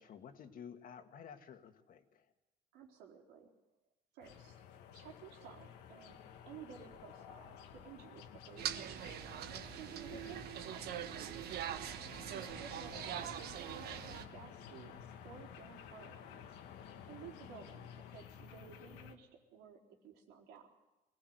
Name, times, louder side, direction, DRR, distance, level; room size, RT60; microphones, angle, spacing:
voice 1, 0.0-2.3 10.1-10.4, left 7 dB, 55° left, 7 dB, 2.0 m, -52 dB
voice 2, 2.7-3.5 4.1-4.6 4.9-6.2 6.5-9.0 9.7-11.4 12.3-16.5 17.1-20.7, right 7 dB, 90° right, 1 dB, 4.1 m, -55 dB
sound 1, 4.2-19.2, left 8 dB, 90° left, 1.8 m, -53 dB
sound 2, 8.6-14.3, right 10 dB, 70° right, 1.3 m, -43 dB
24.0 x 18.5 x 8.0 m, 1.0 s
cardioid pair, 110°, 17 cm